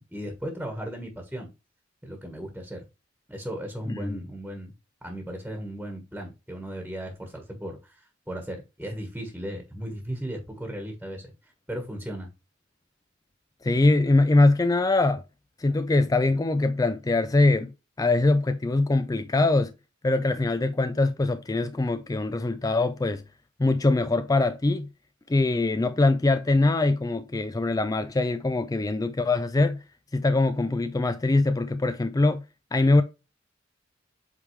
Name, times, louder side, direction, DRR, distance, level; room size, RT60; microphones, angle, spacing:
voice 1, 0.0-1.5 2.0-2.8 3.3-4.7 5.0-8.0 8.3-11.3 11.7-12.3, equal, 5° right, 1.4 m, -36 dB
voice 2, 3.9-4.2 13.6-15.2 15.6-17.7 18.0-19.7 20.0-23.2 23.6-24.9 25.3-29.8 30.1-32.4 32.7-33.0, left 2 dB, 20° left, 0.4 m, -23 dB
8.2 x 3.5 x 3.2 m
head